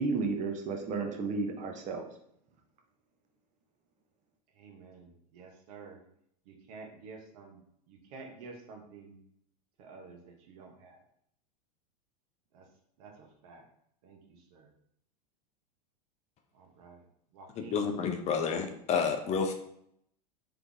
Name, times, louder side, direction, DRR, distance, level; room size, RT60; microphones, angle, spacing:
voice 1, 0.0-2.0, right 4 dB, 35° right, 3 dB, 0.9 m, -32 dB
voice 2, 4.5-6.0 6.4-9.2 9.8-11.0 12.5-12.7 13.0-13.6 14.0-14.7 16.5-17.1 17.3-17.9, right 4 dB, 60° right, 2 dB, 1.1 m, -51 dB
voice 3, 17.6-19.5, left 6 dB, 30° left, 5 dB, 0.6 m, -30 dB
3.9 x 3.4 x 3.5 m, 0.70 s
hypercardioid pair, 105°, 21 cm